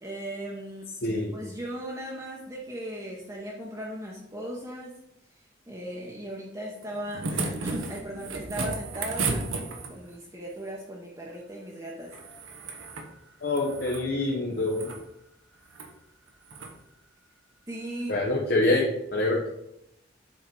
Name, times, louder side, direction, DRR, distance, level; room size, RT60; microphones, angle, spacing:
voice 1, 0.0-0.9 1.3-5.0 5.7-9.5 9.9-12.1 17.7-18.2, right 1 dB, 15° right, -3 dB, 0.8 m, -37 dB
voice 2, 1.0-1.3 13.4-14.9 18.1-19.4, left 2 dB, 55° left, -1 dB, 0.9 m, -26 dB
sound 1, 6.8-10.1 12.1-13.1 13.4-14.1 14.6-15.0 15.7-15.9 16.5-16.7 18.1-18.2, right 3 dB, 85° right, 1.0 m, -34 dB
7.6 x 3.9 x 4.6 m, 0.82 s
head